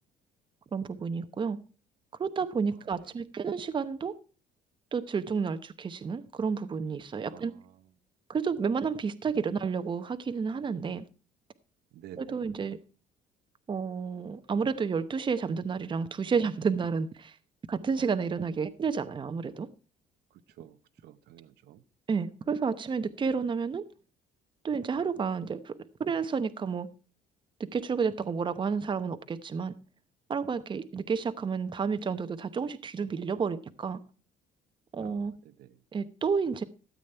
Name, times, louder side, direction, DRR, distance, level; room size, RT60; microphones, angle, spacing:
voice 1, 0.7-1.6 2.2-4.2 4.9-7.5 8.3-11.0 12.2-12.8 13.7-17.3 17.7-19.7 22.1-23.8 24.6-25.7 26.0-26.9 27.7-29.8 30.3-34.0 34.9-35.3 35.9-36.6, right 5 dB, 30° right, 0.8 m, -30 dB
voice 2, 7.3-7.7 11.9-12.4 20.6-20.8 21.0-21.8 35.0-35.7, right 11 dB, 75° right, 0.9 m, -51 dB
13.0 x 8.5 x 4.4 m
cardioid pair, 110°, 17 cm